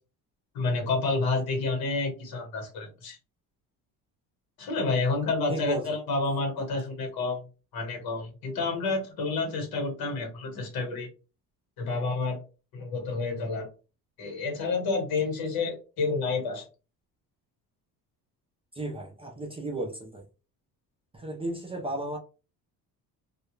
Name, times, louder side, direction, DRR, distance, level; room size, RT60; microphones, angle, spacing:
voice 1, 0.5-3.2 4.6-7.4 7.7-11.1 11.8-12.4 12.7-13.7 14.2-16.6, left 3 dB, 70° left, 1.2 m, -29 dB
voice 2, 5.5-5.9 18.7-20.3 21.1-22.2, right 1 dB, 15° right, 0.4 m, -34 dB
2.3 x 2.1 x 3.0 m
cardioid pair, 140°, 37 cm